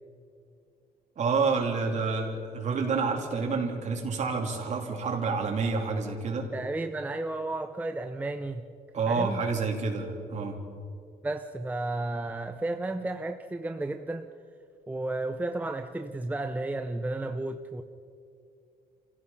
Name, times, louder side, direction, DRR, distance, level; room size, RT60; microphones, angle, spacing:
voice 1, 1.2-6.5 8.9-10.6, right 4 dB, 50° right, 1 dB, 3.0 m, -28 dB
voice 2, 6.5-8.7 9.1-9.4 11.2-14.3 14.9-17.8, right 2 dB, 10° right, 7 dB, 0.6 m, -33 dB
28.5 x 16.0 x 5.7 m, 2.4 s
cardioid pair, 155°, 16 cm